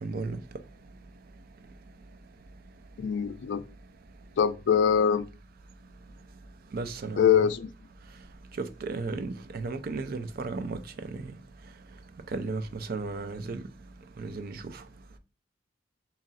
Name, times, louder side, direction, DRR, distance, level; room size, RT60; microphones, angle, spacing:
voice 1, 0.0-0.4 6.7-7.4 8.8-10.8 12.3-13.6 14.2-14.6, right 3 dB, 50° right, 0.4 m, -34 dB
voice 2, 3.0-3.6 4.4-5.3 7.2-7.7, left 7 dB, 65° left, 0.3 m, -23 dB
3.0 x 2.5 x 4.0 m
head